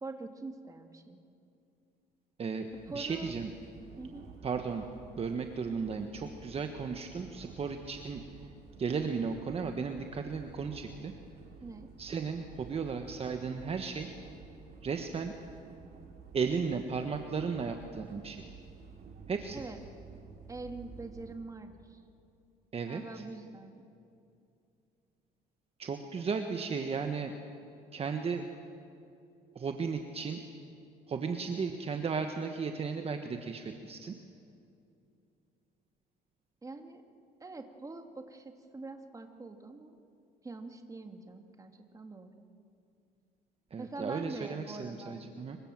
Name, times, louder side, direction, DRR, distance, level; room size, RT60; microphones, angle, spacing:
voice 1, 0.0-1.2 2.9-3.4 4.0-4.3 11.6-11.9 19.5-19.8 20.5-22.0 22.9-23.8 36.6-37.0 37.4-40.0 40.4-42.4 43.8-45.3, right 3 dB, 20° right, 5 dB, 2.3 m, -44 dB
voice 2, 2.4-3.5 4.4-4.8 5.1-8.2 8.8-11.1 12.0-14.1 14.8-15.3 16.3-18.5 19.3-19.6 22.7-23.2 25.8-27.3 27.9-28.5 29.5-30.4 31.1-34.2 43.7-45.6, right 5 dB, 35° right, 5 dB, 1.5 m, -35 dB
sound 1, 2.7-21.4, right 6 dB, 70° right, 5.0 m, -52 dB
26.5 x 24.0 x 7.7 m, 2.6 s
cardioid pair, 110°, 17 cm